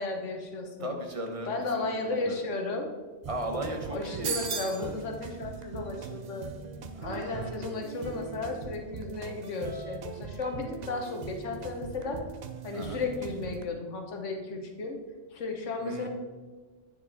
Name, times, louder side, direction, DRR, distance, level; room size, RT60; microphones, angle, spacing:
voice 1, 0.0-1.0 1.4-2.9 3.9-6.5 7.0-12.2 12.6-15.0 15.3-16.1, left 3 dB, 80° left, 3 dB, 1.4 m, -34 dB
voice 2, 0.8-1.9 2.2-2.4 3.3-5.0 6.9-7.6 12.7-13.0 15.8-16.1, right 1 dB, 30° right, 3 dB, 1.0 m, -37 dB
sound 1, 3.2-13.7, right 6 dB, 50° right, 0.5 m, -42 dB
sound 2, 4.2-4.9, right 6 dB, 85° right, 1.2 m, -32 dB
9.2 x 6.1 x 4.1 m, 1.3 s
omnidirectional pair, 1.3 m